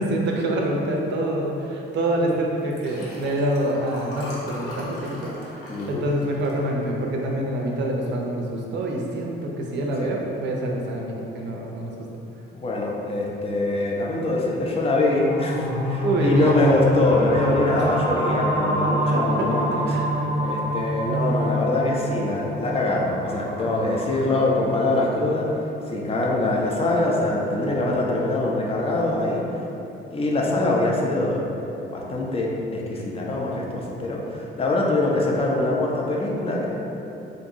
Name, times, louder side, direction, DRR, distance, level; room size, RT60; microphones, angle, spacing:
voice 1, 0.0-11.9 16.0-16.5 19.0-20.1, right 1 dB, 40° right, 0 dB, 0.6 m, -26 dB
Liquid, 2.6-7.2 7.7-8.3, left 1 dB, 50° left, 0.8 m, -40 dB
voice 2, 5.7-6.0 10.0-10.1 12.5-19.9 20.4-25.5 25.9-29.5 30.1-31.5 31.9-36.7, left 2 dB, 20° left, -2 dB, 0.5 m, -23 dB
sound 1, 15.1-24.3, equal, 85° right, 0.7 m, -26 dB
4.0 x 2.6 x 2.5 m, 3.0 s
figure-of-eight pair, 50°, 29 cm